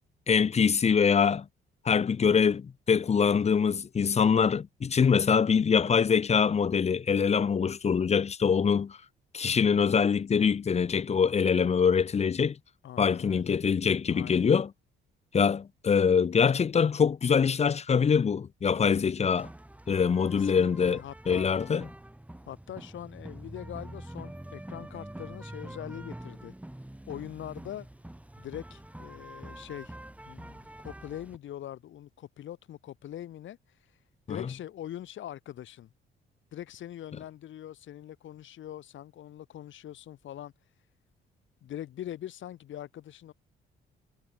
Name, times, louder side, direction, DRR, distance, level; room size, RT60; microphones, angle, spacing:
voice 1, 0.3-1.4 1.8-9.0 9.3-12.6 13.0-14.7 15.3-19.5 19.9-21.0 21.3-21.8 34.3-34.4, left 6 dB, 35° left, 0.7 m, -24 dB
voice 2, 1.9-2.2 12.8-13.6 14.1-14.5 20.3-21.5 22.5-26.5 27.1-27.9 28.4-30.0 30.2-35.9 36.5-40.9 41.6-43.3, left 12 dB, 75° left, 6.5 m, -42 dB
sound 1, 19.4-31.4, right 1 dB, 5° right, 4.9 m, -45 dB
cardioid pair, 90°, 20 cm